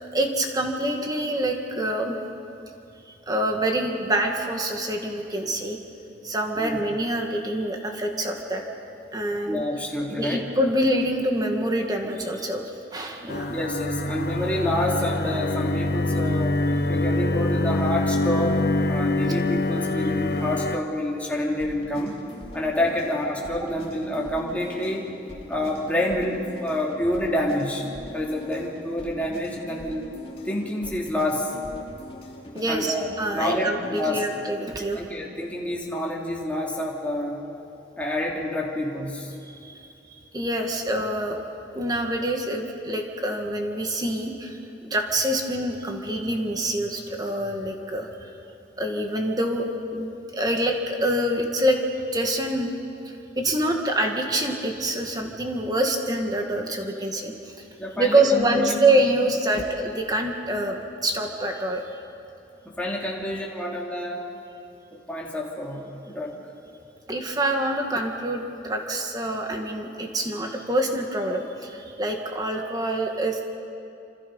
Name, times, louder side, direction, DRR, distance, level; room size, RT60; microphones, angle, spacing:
voice 1, 0.1-2.2 3.1-5.8 6.2-8.6 9.1-9.6 10.1-13.5 32.5-35.0 39.4-39.8 40.3-41.4 41.7-48.3 48.8-51.8 52.1-52.7 53.1-57.6 57.9-62.0 67.1-73.4, right 1 dB, 20° right, 2 dB, 1.9 m, -26 dB
voice 2, 9.5-10.4 13.5-16.6 16.9-22.2 22.5-25.1 25.5-27.9 28.1-30.1 30.4-31.5 32.7-34.2 34.9-37.4 38.0-39.4 57.8-58.8 62.6-64.2 64.9-66.3, left 1 dB, 10° left, -3 dB, 2.9 m, -28 dB
sound 1, 13.3-20.8, left 2 dB, 60° left, 1.0 m, -25 dB
sound 2, 21.4-34.3, equal, 30° left, 2.6 m, -42 dB
28.0 x 27.0 x 5.5 m, 2.7 s
head